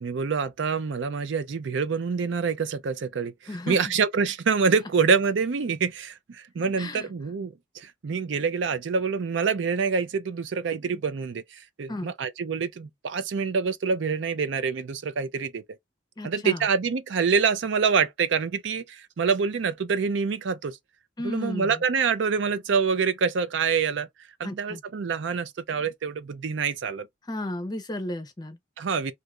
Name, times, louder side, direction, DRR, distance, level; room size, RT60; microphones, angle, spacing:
voice 1, 0.0-3.3 3.7-15.6 16.2-20.8 21.2-24.1 24.4-27.1 28.8-29.1, right 5 dB, 65° right, 0.4 m, -26 dB
voice 2, 6.8-7.1 11.9-12.1 16.2-16.6 21.2-21.8 24.4-24.8 27.3-28.6, left 1 dB, 20° left, 0.5 m, -33 dB
2.6 x 2.4 x 3.0 m
head